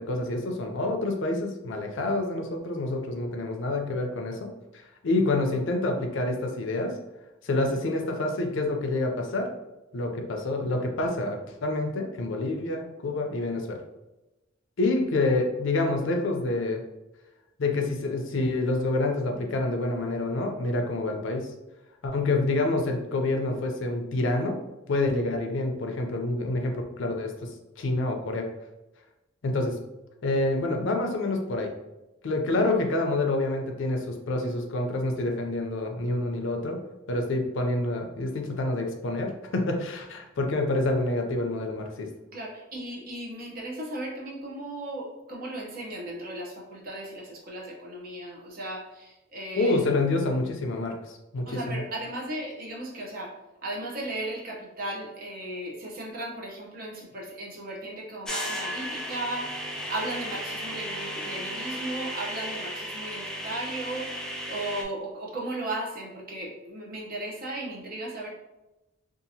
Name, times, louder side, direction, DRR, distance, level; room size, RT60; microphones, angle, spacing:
voice 1, 0.0-4.5 4.7-6.9 7.4-9.5 9.9-13.8 14.8-16.8 17.6-21.5 22.0-24.6 24.9-27.5 27.8-28.5 29.4-29.8 30.2-31.7 32.2-36.8 37.1-42.1 49.6-51.8, left 2 dB, 65° left, 3 dB, 0.5 m, -27 dB
voice 2, 42.3-49.7 51.5-53.3 53.6-59.5 59.9-64.1 64.5-68.3, right 1 dB, 45° right, -2 dB, 0.7 m, -36 dB
sound 1, 58.2-64.8, equal, 5° left, 0.3 m, -34 dB
2.7 x 2.4 x 2.7 m, 1.0 s
head